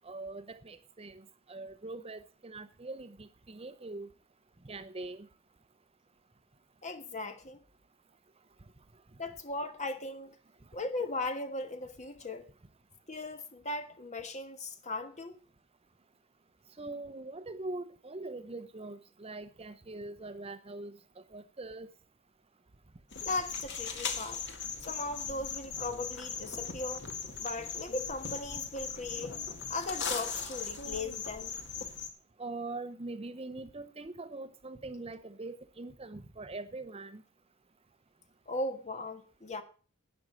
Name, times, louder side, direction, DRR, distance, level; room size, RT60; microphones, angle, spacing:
voice 1, 0.0-1.2 1.5-4.1 4.7-5.3 16.8-20.9 21.3-21.9 32.4-37.2, right 2 dB, 25° right, 0.7 m, -42 dB
voice 2, 6.8-7.6 9.2-10.3 10.7-12.5 13.1-15.4 23.2-24.5 24.8-27.1 27.4-29.4 29.7-31.6 38.5-39.6, left 2 dB, 30° left, 1.5 m, -38 dB
sound 1, 23.1-32.1, left 6 dB, 50° left, 2.1 m, -39 dB
11.5 x 9.6 x 7.5 m
head